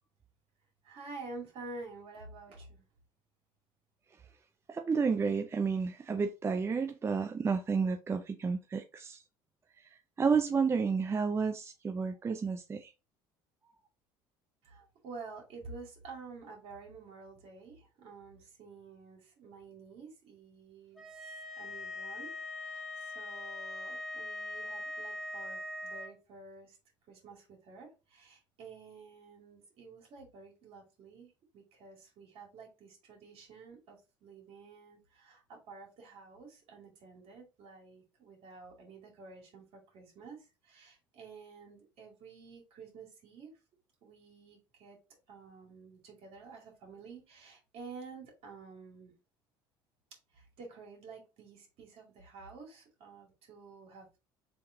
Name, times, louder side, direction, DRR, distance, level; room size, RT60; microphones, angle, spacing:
voice 1, 0.8-2.8 14.6-26.8 27.1-43.5 44.0-45.0 45.3-49.1 50.3-54.2, right 4 dB, 65° right, 2.2 m, -50 dB
voice 2, 4.7-9.2 10.2-12.9, right 5 dB, 25° right, 0.4 m, -31 dB
sound 1, 21.0-26.1, left 2 dB, ahead, 1.1 m, -41 dB
3.5 x 3.1 x 3.6 m
supercardioid pair, 85°, 11 cm